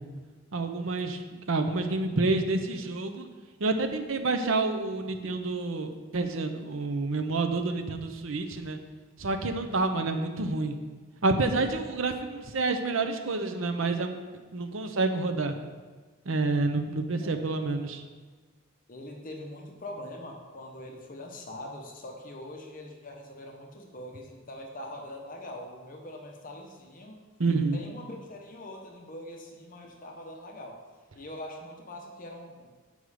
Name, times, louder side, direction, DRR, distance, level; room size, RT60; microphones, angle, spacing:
voice 1, 0.5-1.2 1.5-3.3 3.6-8.8 9.2-10.8 11.2-14.1 14.5-15.5 16.3-18.0 27.4-27.8, right 3 dB, 75° right, 6 dB, 0.7 m, -28 dB
voice 2, 18.9-27.2 27.7-30.8 31.1-32.8, left 1 dB, 40° left, 2 dB, 0.9 m, -43 dB
7.8 x 5.4 x 4.9 m, 1.4 s
head